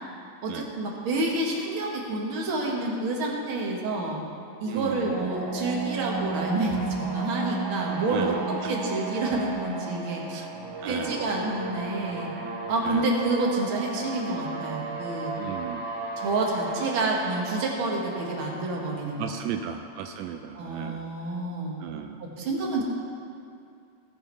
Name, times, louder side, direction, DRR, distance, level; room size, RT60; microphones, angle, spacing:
voice 1, 0.4-4.2 4.6-8.4 8.7-10.2 10.8-12.3 12.7-15.3 16.2-19.3 20.6-21.8 22.2-22.8, right 2 dB, 50° right, -2 dB, 2.0 m, -28 dB
sound 1, 4.6-20.4, right 4 dB, 65° right, 2.7 m, -34 dB
voice 2, 4.7-5.3 8.1-8.7 10.3-10.5 10.8-11.2 12.8-13.1 15.4-15.8 19.2-21.1 21.8-22.2, right 9 dB, 85° right, 5 dB, 1.5 m, -35 dB
18.0 x 7.4 x 4.0 m, 2.5 s
omnidirectional pair, 3.5 m